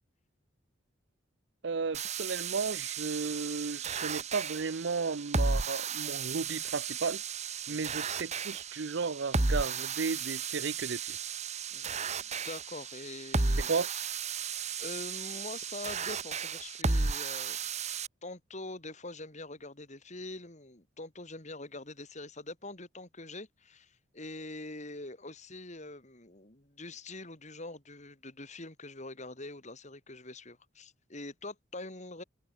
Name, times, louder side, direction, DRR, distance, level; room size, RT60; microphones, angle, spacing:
voice 1, 1.6-7.2 7.7-11.2 13.7-13.9, right 4 dB, 65° right, 0.6 m, -34 dB
sound 1, 1.9-18.1, right 4 dB, 35° right, 1.2 m, -34 dB
voice 2, 11.7-13.7 14.8-17.6 18.2-32.2, left 2 dB, 40° left, 3.8 m, -44 dB
open air
head